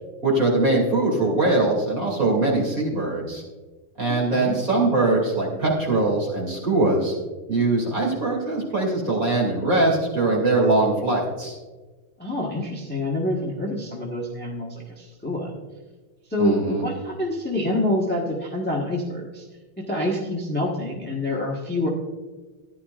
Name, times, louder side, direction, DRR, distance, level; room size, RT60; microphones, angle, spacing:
voice 1, 0.2-3.4 4.0-7.1 7.5-11.6 16.4-16.8, right 2 dB, 40° right, -3 dB, 3.1 m, -22 dB
voice 2, 4.1-4.5 12.2-15.5 16.3-19.4 19.8-21.9, left 1 dB, 5° left, -3 dB, 1.0 m, -27 dB
14.0 x 11.0 x 2.5 m, 1.3 s
omnidirectional pair, 2.3 m